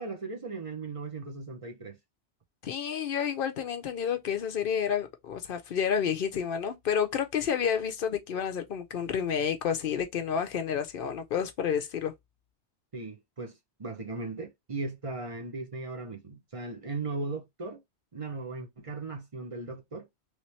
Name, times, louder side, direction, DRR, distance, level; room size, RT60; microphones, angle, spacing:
voice 1, 0.0-2.0 12.9-17.8 18.1-20.1, right 3 dB, 35° right, 0.8 m, -37 dB
voice 2, 2.6-12.1, left 8 dB, 60° left, 0.7 m, -30 dB
3.2 x 2.8 x 3.1 m
omnidirectional pair, 1.2 m